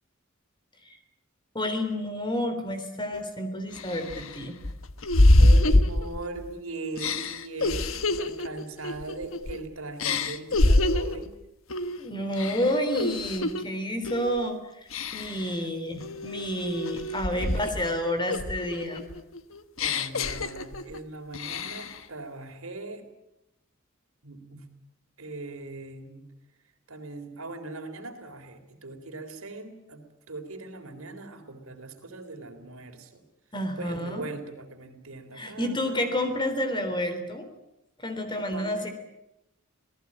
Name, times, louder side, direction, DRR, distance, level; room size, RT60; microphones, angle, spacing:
voice 1, 1.5-4.6 12.0-19.1 33.5-34.2 35.3-37.5 38.0-38.9, left 1 dB, 20° left, 8 dB, 3.6 m, -30 dB
sound 1, 3.1-3.2 3.8-6.5 7.0-9.6 10.0-11.2 11.7-12.0 12.3-13.6 14.0-14.4 14.9-15.5 16.0-17.9 18.3-21.0 21.3-22.0, left 1 dB, 75° left, 1.3 m, -25 dB
voice 2, 5.4-11.3 15.5-15.7 17.3-18.0 19.8-23.0 24.2-24.7 25.2-26.2 26.9-30.0 30.3-33.2 33.8-36.1 38.3-38.9, right 3 dB, 85° right, 6 dB, 3.8 m, -40 dB
27.0 x 18.5 x 8.8 m, 0.88 s
head